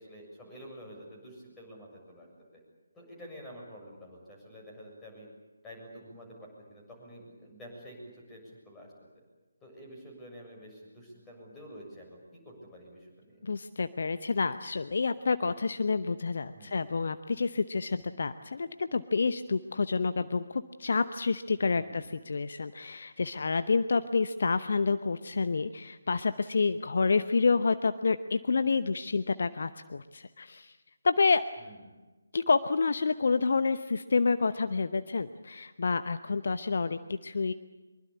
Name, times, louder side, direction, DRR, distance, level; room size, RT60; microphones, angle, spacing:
voice 1, 0.0-2.3 2.9-5.3 5.6-6.4 6.7-9.2 9.6-13.4 16.5-16.8 21.6-22.1 31.6-31.8, equal, 10° left, -2 dB, 7.0 m, -49 dB
voice 2, 13.4-30.8 31.0-31.4 32.3-37.5, left 4 dB, 50° left, 11 dB, 0.8 m, -28 dB
24.0 x 23.0 x 8.5 m, 1.2 s
figure-of-eight pair, 150°, 0 cm